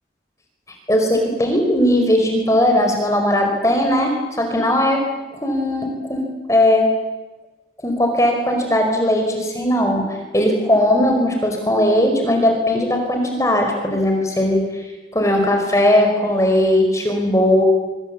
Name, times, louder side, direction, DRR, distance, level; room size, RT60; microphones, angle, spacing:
voice 1, 0.9-5.0 5.3-6.9 7.8-17.6, left 1 dB, 15° left, 3 dB, 5.1 m, -18 dB
25.5 x 25.0 x 8.5 m, 1.1 s
head